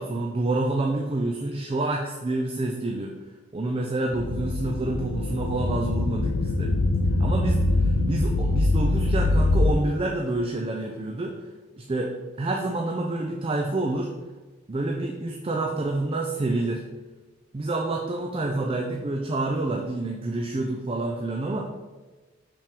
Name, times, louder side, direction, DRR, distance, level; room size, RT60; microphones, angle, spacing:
voice 1, 0.0-3.1 3.5-6.7 7.2-11.5 11.8-14.1 14.7-16.8 17.5-21.7, right 2 dB, 25° right, 1 dB, 0.4 m, -28 dB
sound 1, 4.1-9.7, left 2 dB, 85° left, 0.4 m, -23 dB
5.4 x 3.5 x 5.1 m, 1.2 s
head